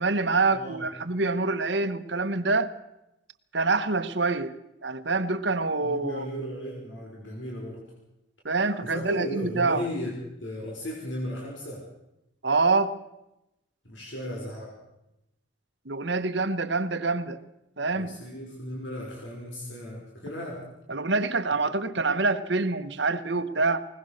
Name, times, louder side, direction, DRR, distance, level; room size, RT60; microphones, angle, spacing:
voice 1, 0.0-2.7 3.5-4.5 4.8-6.3 8.4-9.8 12.4-13.0 15.8-17.4 17.8-18.2 20.9-23.8, right 3 dB, 60° right, 8 dB, 1.3 m, -26 dB
voice 2, 0.5-0.9 5.8-7.9 8.8-10.1 10.4-11.9 13.8-14.8 17.9-20.7, equal, 75° left, -2 dB, 5.4 m, -36 dB
20.5 x 20.0 x 6.6 m, 0.90 s
head